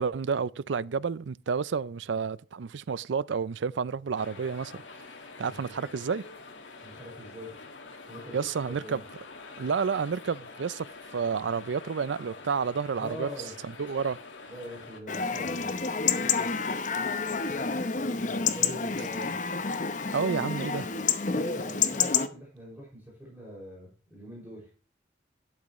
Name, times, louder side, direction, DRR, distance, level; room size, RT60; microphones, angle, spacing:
voice 1, 0.0-4.8 5.4-6.2 8.3-9.0 9.6-10.9 11.1-13.3 13.6-14.2 20.1-20.9, right 5 dB, 80° right, 0.5 m, -30 dB
sound 1, 4.1-15.0, left 3 dB, 90° left, 1.8 m, -46 dB
voice 2, 5.4-5.7 6.8-7.5 8.1-8.4 8.7-9.0 13.0-13.5 14.5-15.7 18.5-19.4 21.3-24.7, equal, 10° right, 5.7 m, -43 dB
Chatter / Livestock farm animals working animals / Chirp tweet, 15.1-22.3, left 5 dB, 45° left, 0.8 m, -29 dB
12.0 x 8.8 x 3.1 m
head